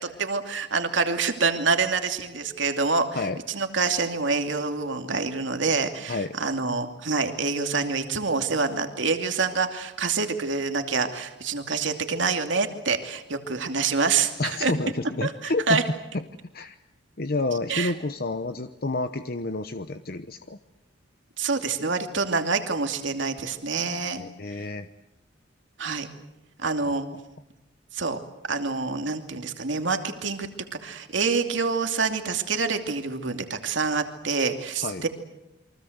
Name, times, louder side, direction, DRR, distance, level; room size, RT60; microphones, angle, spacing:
voice 1, 0.0-14.7 15.2-15.8 17.7-17.9 21.4-24.2 25.8-26.1 26.6-27.1 27.9-28.2 28.5-30.5 30.8-35.1, right 4 dB, 75° right, 6 dB, 2.7 m, -26 dB
voice 2, 14.4-15.8 16.1-16.2 16.5-16.8 17.2-20.6 24.2-24.9 26.8-27.0 34.8-35.0, left 2 dB, 50° left, 9 dB, 1.0 m, -29 dB
29.0 x 24.0 x 8.0 m, 0.91 s
head